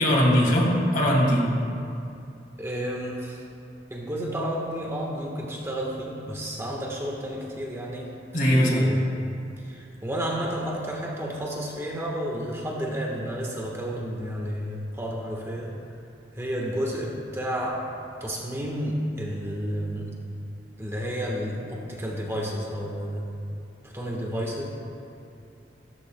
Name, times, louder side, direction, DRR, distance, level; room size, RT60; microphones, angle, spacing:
voice 1, 0.0-1.5 8.3-8.9, equal, 50° left, -2 dB, 2.3 m, -20 dB
voice 2, 2.6-3.4 3.9-8.1 8.5-9.1 9.6-15.7 16.3-17.8 18.2-20.1 20.8-23.3 23.8-24.7, equal, 15° right, -2 dB, 1.2 m, -31 dB
15.0 x 14.0 x 2.2 m, 2.5 s
head